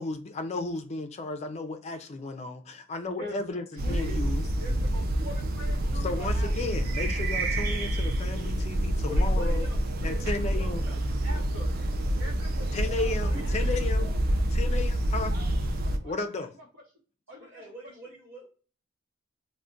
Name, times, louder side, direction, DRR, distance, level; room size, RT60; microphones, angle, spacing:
voice 1, 0.0-4.4 6.0-9.6 10.0-10.8 12.7-14.1 14.5-15.3 16.0-16.5, left 3 dB, 30° left, 0.3 m, -34 dB
voice 2, 3.2-4.2 4.6-7.2 10.1-10.5 11.2-11.7 12.2-14.4 15.3-15.5 15.8-16.5 17.3-17.7, equal, 75° right, 0.8 m, -44 dB
sound 1, 3.8-16.0, right 1 dB, 45° right, 0.3 m, -27 dB
voice 3, 9.0-11.0 12.9-13.7 17.4-18.5, left 1 dB, 10° right, 0.9 m, -45 dB
2.4 x 2.1 x 3.7 m
head